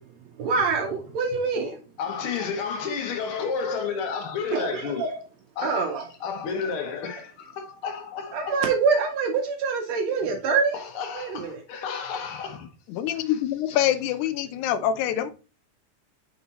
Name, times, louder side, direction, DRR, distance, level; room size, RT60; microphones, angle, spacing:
voice 1, 0.4-1.8 2.4-2.5 4.5-5.2 5.6-6.1 8.3-10.8 11.1-11.6, right 5 dB, 70° right, 1.8 m, -25 dB
voice 2, 2.0-5.0 5.6-8.6 10.7-12.7 13.1-13.3 13.7-13.8, left 6 dB, 65° left, 1.4 m, -31 dB
voice 3, 12.9-15.3, left 11 dB, 80° left, 2.0 m, -25 dB
5.0 x 4.7 x 4.0 m
omnidirectional pair, 3.5 m